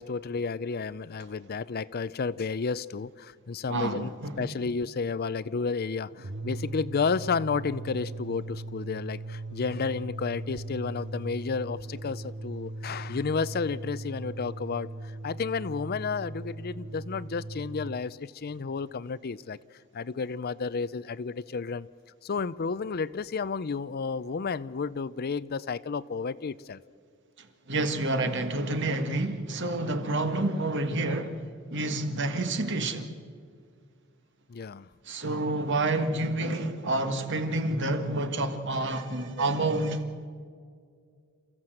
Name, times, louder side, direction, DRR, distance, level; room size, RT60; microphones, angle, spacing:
voice 1, 0.0-4.1 4.4-19.6 19.9-21.9 22.2-26.8 34.5-34.9, left 5 dB, 50° left, 0.5 m, -32 dB
voice 2, 3.7-4.5 27.4-33.2 35.1-40.0, right 2 dB, 60° right, 1.7 m, -29 dB
sound 1, 6.1-18.0, right 2 dB, 80° right, 1.0 m, -39 dB
28.0 x 15.0 x 7.8 m
head